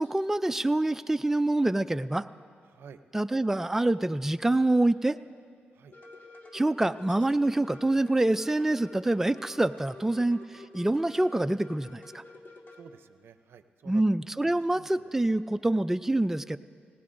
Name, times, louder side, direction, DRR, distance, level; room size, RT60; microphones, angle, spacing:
voice 1, 0.0-2.3 3.1-5.2 6.5-10.4 10.7-12.2 13.9-16.6, right 2 dB, 10° right, 11 dB, 0.3 m, -26 dB
voice 2, 2.7-3.0 5.7-5.9 12.7-14.0 14.4-15.1, right 7 dB, 80° right, 11 dB, 0.5 m, -51 dB
sound 1, 5.9-12.8, left 2 dB, 55° left, 1.8 m, -49 dB
19.5 x 18.5 x 2.6 m, 2.2 s
cardioid pair, 60°, 4 cm